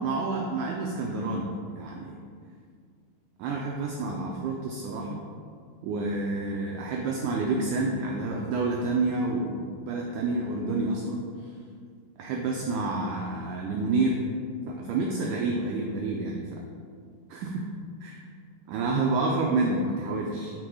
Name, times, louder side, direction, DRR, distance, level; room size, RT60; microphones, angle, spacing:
voice 1, 0.0-2.2 3.4-5.2 5.8-11.2 12.2-14.2 14.7-16.6 17.3-17.7 18.0-18.2 18.7-20.5, right 3 dB, 85° right, 0 dB, 1.8 m, -29 dB
11.5 x 4.6 x 4.8 m, 2.1 s
omnidirectional pair, 4.5 m